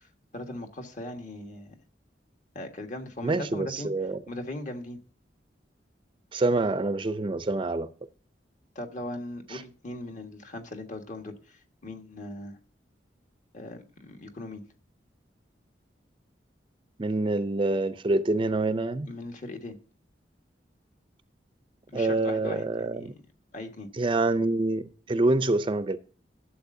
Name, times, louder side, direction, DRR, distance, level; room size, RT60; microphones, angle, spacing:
voice 1, 0.0-1.8 2.5-3.9 4.3-5.0 8.7-12.6 13.5-14.6 19.1-19.8 21.9-22.6 23.0-23.2 23.5-23.9, left 1 dB, 45° left, 1.5 m, -39 dB
voice 2, 3.2-4.2 6.3-7.9 9.5-9.6 17.0-19.1 21.9-23.1 23.9-26.0, right 2 dB, 30° right, 0.5 m, -26 dB
12.0 x 7.5 x 2.6 m
head